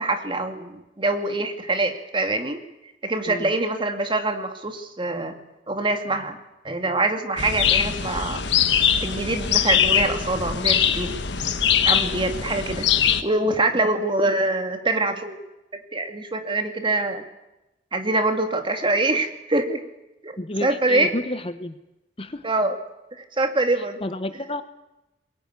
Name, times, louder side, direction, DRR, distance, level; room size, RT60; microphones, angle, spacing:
voice 1, 0.0-2.6 3.0-5.4 5.7-6.4 6.6-8.4 9.0-11.2 11.8-12.9 13.2-15.4 15.7-17.2 17.9-19.8 20.2-21.1 22.4-22.8 23.1-24.0, right 2 dB, 30° right, 5 dB, 2.4 m, -24 dB
sound 1, 7.4-13.2, left 8 dB, 90° left, 1.4 m, -22 dB
voice 2, 20.4-21.7 22.2-22.4 24.0-24.6, left 1 dB, 35° left, 11 dB, 1.1 m, -30 dB
22.0 x 20.0 x 9.7 m, 0.95 s
head